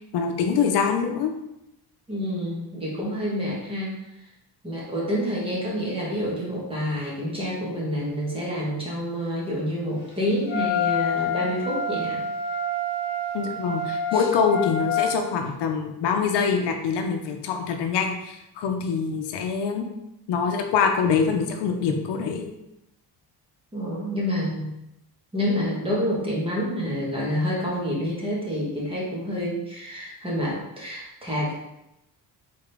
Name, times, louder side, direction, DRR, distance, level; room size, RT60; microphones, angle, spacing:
voice 1, 0.1-1.3 13.3-19.9 20.3-22.5, left 6 dB, 75° left, 4 dB, 0.7 m, -24 dB
voice 2, 2.1-3.9 4.6-12.2 14.1-14.3 23.7-24.8 25.3-31.5, equal, 15° right, -5 dB, 1.1 m, -28 dB
Wind instrument woodwind instrument, 10.5-15.1, left 3 dB, 25° left, 0.8 m, -27 dB
4.2 x 3.7 x 3.3 m, 0.87 s
cardioid pair, 175°, 42 cm